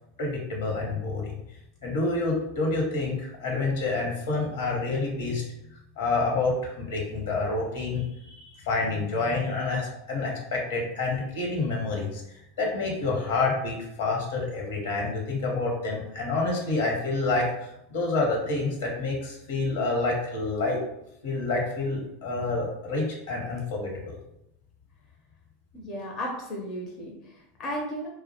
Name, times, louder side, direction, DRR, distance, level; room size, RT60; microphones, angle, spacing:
voice 1, 0.2-1.4 1.8-5.4 6.0-12.2 12.6-20.8 21.2-24.2, left 3 dB, 75° left, -1 dB, 0.8 m, -28 dB
voice 2, 25.7-28.1, equal, 40° left, -1 dB, 0.5 m, -34 dB
2.3 x 2.0 x 2.7 m, 0.82 s
hypercardioid pair, 90°, 0 cm